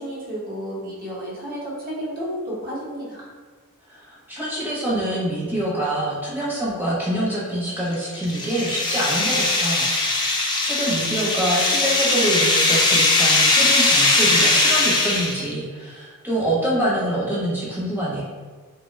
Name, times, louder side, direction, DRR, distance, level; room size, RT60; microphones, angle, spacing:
voice 1, 0.0-3.3, equal, 40° right, -6 dB, 1.0 m, -32 dB
voice 2, 3.9-18.2, right 1 dB, 10° right, -7 dB, 0.7 m, -25 dB
sound 1, 7.8-15.5, left 2 dB, 20° left, 0.4 m, -20 dB
2.9 x 2.2 x 3.2 m, 1.5 s
head